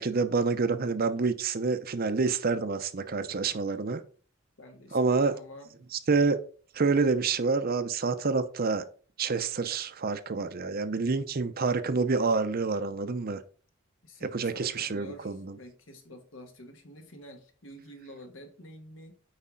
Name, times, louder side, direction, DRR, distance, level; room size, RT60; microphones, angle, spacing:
voice 1, 0.0-4.0 4.9-5.3 5.9-6.4 6.7-8.8 9.2-13.4 14.2-15.6, right 4 dB, 50° right, 0.6 m, -27 dB
voice 2, 4.6-5.8 14.0-19.1, equal, 70° left, 1.5 m, -48 dB
8.4 x 4.8 x 3.8 m
head